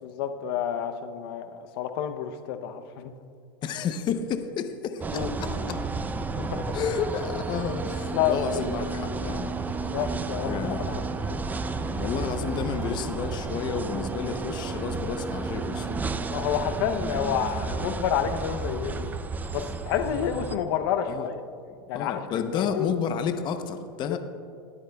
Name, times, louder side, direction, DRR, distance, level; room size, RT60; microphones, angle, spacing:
voice 1, 0.0-3.1 5.1-5.3 6.4-6.7 8.1-9.6 9.9-11.3 16.3-19.1 19.5-21.4 21.9-23.0 24.1-24.2, left 9 dB, 70° left, 8 dB, 0.7 m, -30 dB
voice 2, 3.6-5.9 6.7-9.5 10.4-10.8 11.8-15.9 17.7-17.9 21.1-21.3 21.9-24.2, left 7 dB, 35° left, 8 dB, 0.7 m, -31 dB
sound 1, 5.0-20.6, right 4 dB, 15° right, 0.4 m, -32 dB
22.0 x 8.7 x 2.3 m, 2.3 s
supercardioid pair, 125°, 13 cm